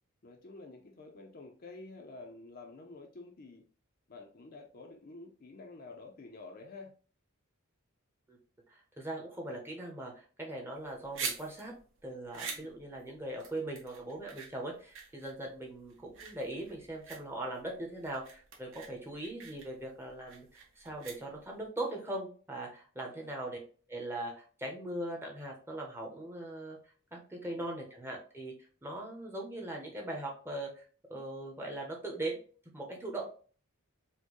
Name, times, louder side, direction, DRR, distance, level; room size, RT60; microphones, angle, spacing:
voice 1, 0.2-3.6 4.1-6.9 12.4-12.7 23.0-23.3 27.5-27.7, left 3 dB, 40° left, 0.5 m, -50 dB
voice 2, 8.7-11.7 12.0-23.6 23.9-28.5 28.8-30.8 31.1-32.4 32.7-33.3, right 1 dB, 10° right, 0.7 m, -40 dB
sound 1, 10.7-21.7, right 5 dB, 60° right, 0.9 m, -45 dB
4.3 x 2.1 x 3.0 m
head